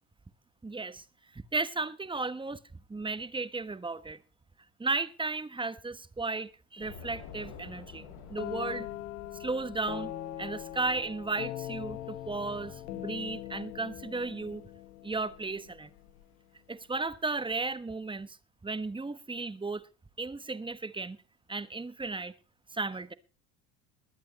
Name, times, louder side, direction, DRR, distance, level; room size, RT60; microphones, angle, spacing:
voice 1, 0.6-1.0 1.3-2.6 2.9-4.2 4.8-8.9 9.4-10.1 10.4-14.6 15.0-15.9 16.7-18.4 18.6-19.9 20.2-21.2 21.5-22.3 22.7-23.1, right 3 dB, 10° right, 1.2 m, -34 dB
Train / Subway metro underground, 6.8-16.2, left 7 dB, 70° left, 6.4 m, -52 dB
sound 1, 8.4-16.1, left 14 dB, 90° left, 1.0 m, -41 dB
21.5 x 8.9 x 4.2 m
supercardioid pair, 95°, 43 cm